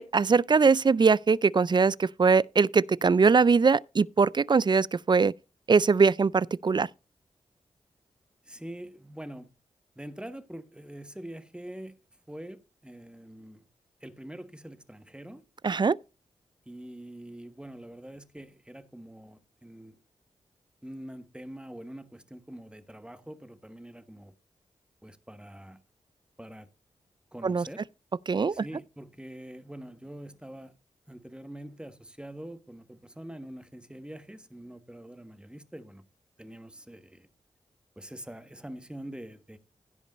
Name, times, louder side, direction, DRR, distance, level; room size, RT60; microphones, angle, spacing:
voice 1, 0.0-5.3 5.7-6.9 15.6-16.0 27.4-27.6 28.3-28.6, right 5 dB, 40° right, 0.4 m, -22 dB
voice 2, 8.5-9.5 10.0-12.0 12.3-13.7 14.0-15.4 16.6-20.0 20.8-24.3 25.0-25.8 26.4-26.7 27.3-27.8 28.5-30.7 31.1-36.0 36.4-37.3 38.0-39.6, right 1 dB, 10° right, 1.4 m, -44 dB
16.0 x 5.3 x 4.1 m
cardioid pair, 55°, 12 cm